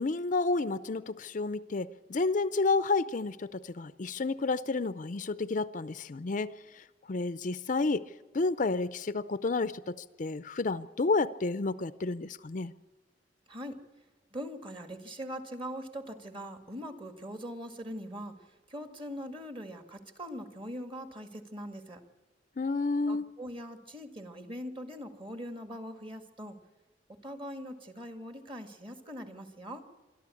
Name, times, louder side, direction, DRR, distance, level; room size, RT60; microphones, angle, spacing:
voice 1, 0.0-6.5 7.1-8.0 8.3-12.7 22.6-23.3, left 3 dB, 45° left, 14 dB, 0.5 m, -30 dB
voice 2, 14.3-18.3 18.7-22.0 23.1-26.6 27.2-29.8, equal, 30° right, 7 dB, 1.9 m, -41 dB
25.0 x 12.5 x 8.5 m, 1.3 s
head